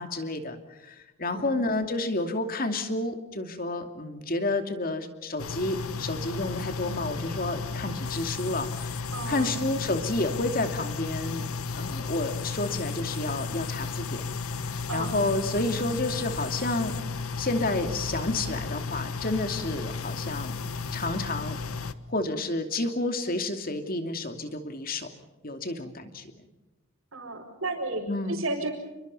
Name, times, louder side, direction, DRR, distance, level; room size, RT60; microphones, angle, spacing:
voice 1, 0.0-11.5 11.7-14.3 14.9-16.9 17.4-20.5 20.9-21.6 22.1-25.1 25.4-26.5 28.1-28.4, left 2 dB, 40° left, 7 dB, 2.6 m, -30 dB
sound 1, 5.4-21.9, left 4 dB, 85° left, 1.3 m, -34 dB
voice 2, 9.1-9.5 14.9-15.1 27.1-28.7, right 2 dB, 75° right, -5 dB, 5.3 m, -33 dB
29.5 x 23.0 x 5.6 m, 1.1 s
head